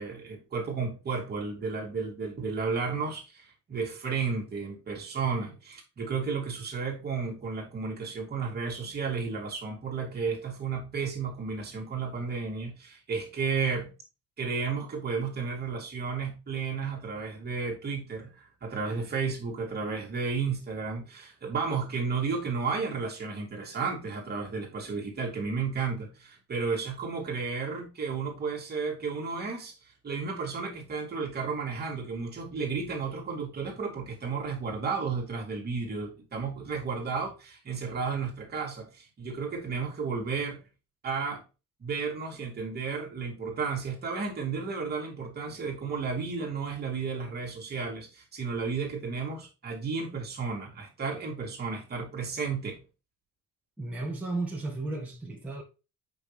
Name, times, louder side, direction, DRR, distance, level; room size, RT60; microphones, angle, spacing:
voice 1, 0.0-13.9 14.4-40.6 41.0-41.4 41.8-52.8, right 5 dB, 30° right, 2.7 m, -33 dB
voice 2, 53.8-55.6, right 2 dB, 5° right, 1.8 m, -34 dB
8.8 x 5.7 x 3.4 m
cardioid pair, 170°, 31 cm